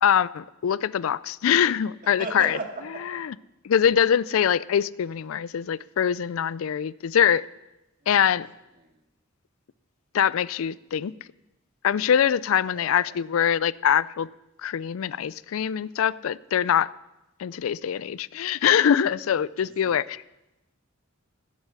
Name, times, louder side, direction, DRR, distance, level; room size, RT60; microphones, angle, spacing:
voice 1, 0.0-2.5 3.6-7.5 8.1-8.5 10.1-11.1 11.8-14.3 14.6-16.9 17.4-20.2, left 8 dB, 80° left, 20 dB, 0.4 m, -23 dB
voice 2, 2.0-3.2 8.0-8.4 8.7-9.0 12.7-13.2 19.6-20.0, right 3 dB, 45° right, 3 dB, 2.1 m, -38 dB
16.5 x 8.1 x 6.7 m, 0.95 s
head